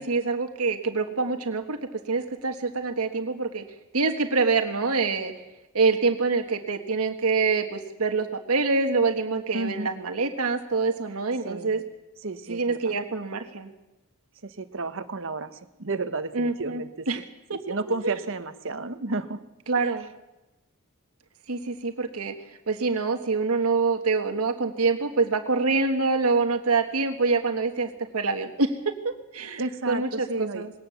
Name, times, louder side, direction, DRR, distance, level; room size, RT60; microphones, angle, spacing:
voice 1, 0.0-1.8 2.1-3.6 3.9-5.3 5.7-11.8 12.5-13.7 16.3-17.2 18.0-18.1 19.7-20.1 21.5-22.3 22.7-29.6 29.9-30.7, right 4 dB, 85° right, 6 dB, 1.5 m, -25 dB
voice 2, 9.5-9.9 11.4-11.8 12.2-12.9 14.4-15.5 15.8-17.1 17.5-19.4 19.8-20.0 29.6-30.6, right 3 dB, 60° right, 11 dB, 1.2 m, -32 dB
21.0 x 18.0 x 7.1 m, 0.98 s
head